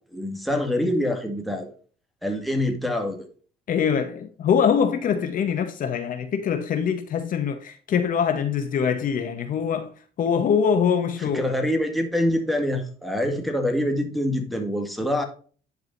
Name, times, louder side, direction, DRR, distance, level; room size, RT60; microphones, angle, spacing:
voice 1, 0.1-1.7 2.2-3.3 11.2-15.2, left 1 dB, ahead, 1.9 m, -25 dB
voice 2, 3.7-9.9 10.2-11.5, left 7 dB, 55° left, 1.0 m, -23 dB
11.0 x 4.9 x 2.6 m
cardioid pair, 110°, 17 cm